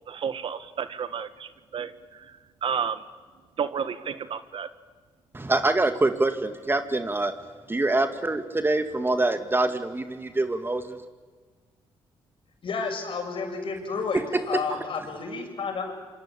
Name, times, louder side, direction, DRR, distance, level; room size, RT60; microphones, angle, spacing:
voice 1, 0.1-3.1 3.6-4.7, right 7 dB, 60° right, 12 dB, 1.5 m, -32 dB
voice 2, 5.3-7.3 7.7-11.0, right 2 dB, 20° right, 8 dB, 2.1 m, -25 dB
voice 3, 12.6-14.2 14.5-15.9, left 5 dB, 55° left, 4 dB, 6.7 m, -31 dB
26.5 x 25.0 x 8.8 m, 1.5 s
cardioid pair, 75°, 10 cm